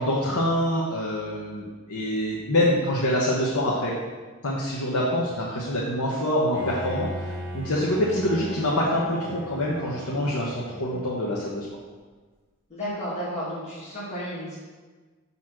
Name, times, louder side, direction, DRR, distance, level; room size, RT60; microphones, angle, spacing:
voice 1, 0.0-3.9 4.4-11.7, left 1 dB, 80° left, -5 dB, 1.0 m, -25 dB
Bowed string instrument, 6.5-11.3, equal, 10° right, 2.0 m, -37 dB
voice 2, 12.7-14.6, equal, 30° left, -9 dB, 2.1 m, -32 dB
6.3 x 4.1 x 6.0 m, 1.4 s
head